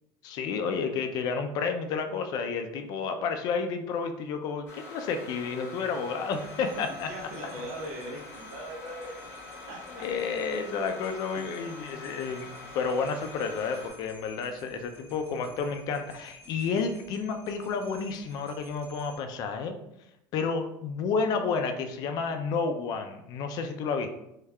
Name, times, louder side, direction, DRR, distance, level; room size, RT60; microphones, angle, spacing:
voice 1, 0.2-7.1 10.0-19.8 20.3-24.1, left 5 dB, 50° left, 7 dB, 0.4 m, -31 dB
sound 1, 4.7-13.9, left 3 dB, 25° left, 0.9 m, -45 dB
sound 2, 6.3-19.2, equal, 25° right, 1.0 m, -54 dB
voice 2, 6.6-9.3 9.7-10.1 11.3-11.5, right 1 dB, 80° right, -1 dB, 0.9 m, -41 dB
3.5 x 3.1 x 2.2 m, 0.83 s
cardioid pair, 145°, 9 cm